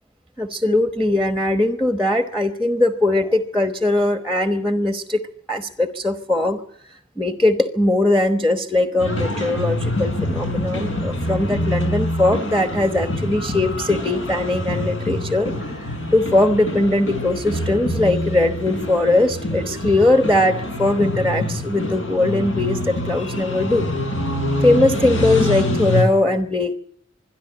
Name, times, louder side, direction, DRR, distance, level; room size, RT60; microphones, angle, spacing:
voice 1, 0.4-5.2 5.5-6.6 7.2-23.9 24.6-26.7, left 2 dB, ahead, 8 dB, 1.0 m, -20 dB
sound 1, 9.0-26.0, left 1 dB, 80° left, 6.5 m, -25 dB
25.5 x 11.0 x 9.8 m, 0.65 s
head